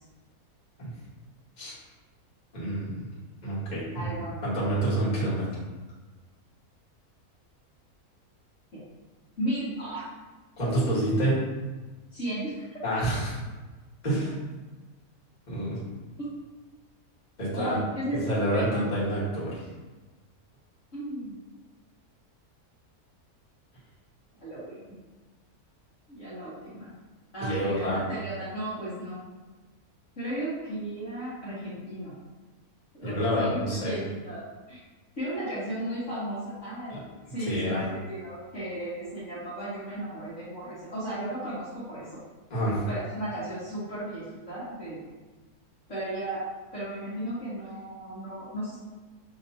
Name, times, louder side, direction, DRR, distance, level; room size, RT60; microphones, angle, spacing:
voice 1, 2.5-3.0 3.4-4.0 4.4-5.5 10.6-11.4 12.8-13.4 14.0-14.3 15.5-15.8 17.4-17.8 18.1-19.6 27.4-28.1 33.0-33.9 36.9-37.0 37.4-37.8 42.5-42.8, right 1 dB, 30° left, -9 dB, 1.6 m, -28 dB
voice 2, 3.9-4.4 8.7-8.8 9.4-10.1 12.1-12.8 16.2-16.3 17.5-18.9 20.9-21.3 24.4-24.9 26.1-26.9 27.3-29.2 30.1-32.2 32.9-34.8 35.1-37.0 37.3-42.2 42.9-45.1 45.9-46.4 46.7-48.8, right 1 dB, 55° left, -10 dB, 1.6 m, -35 dB
6.1 x 3.0 x 2.7 m, 1.2 s
omnidirectional pair, 1.6 m